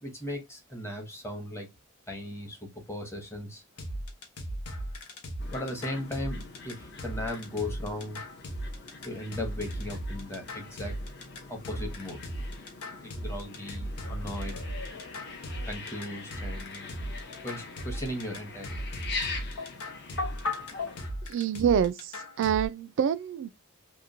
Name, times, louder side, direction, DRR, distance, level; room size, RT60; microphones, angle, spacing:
voice 1, 0.0-1.7 2.1-3.6 5.5-8.2 9.0-11.0 11.5-12.2 13.0-14.6 15.7-16.9 17.4-18.9, left 1 dB, 10° left, 0.8 m, -37 dB
sound 1, 3.8-22.7, equal, 90° left, 0.7 m, -37 dB
sound 2, 5.4-21.1, left 3 dB, 50° left, 0.7 m, -44 dB
sound 3, 13.4-21.0, left 4 dB, 65° left, 1.2 m, -41 dB
voice 2, 21.3-23.5, right 8 dB, 60° right, 0.3 m, -27 dB
2.9 x 2.2 x 2.5 m
head